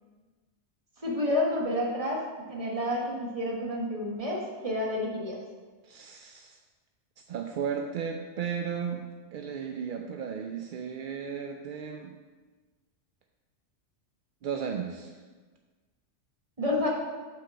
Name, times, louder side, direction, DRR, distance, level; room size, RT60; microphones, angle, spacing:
voice 1, 1.0-5.4 16.6-16.9, left 1 dB, 30° right, -3 dB, 1.5 m, -30 dB
voice 2, 5.8-6.6 7.3-12.2 14.4-15.2, right 7 dB, 60° right, 3 dB, 0.5 m, -35 dB
5.9 x 4.8 x 6.1 m, 1.4 s
omnidirectional pair, 1.2 m